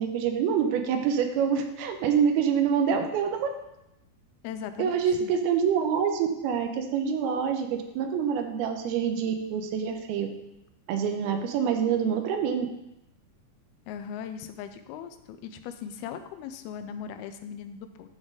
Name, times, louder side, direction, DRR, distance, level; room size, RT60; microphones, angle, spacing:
voice 1, 0.0-3.5 4.8-10.3 10.9-12.7, right 7 dB, 90° right, 6 dB, 2.6 m, -26 dB
voice 2, 4.4-5.3 13.9-18.1, left 8 dB, 85° left, 9 dB, 2.5 m, -39 dB
9.9 x 4.0 x 4.8 m, 0.88 s
omnidirectional pair, 4.5 m